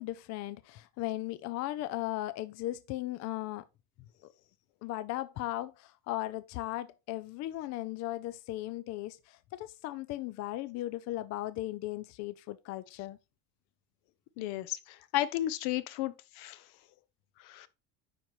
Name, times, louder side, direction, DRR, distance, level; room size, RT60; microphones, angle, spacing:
voice 1, 0.0-3.6 4.8-13.2, left 15 dB, 45° left, 0.4 m, -37 dB
voice 2, 14.4-16.6 17.4-17.7, left 14 dB, 70° left, 0.8 m, -33 dB
9.3 x 5.3 x 3.1 m
cardioid pair, 145°, 40 cm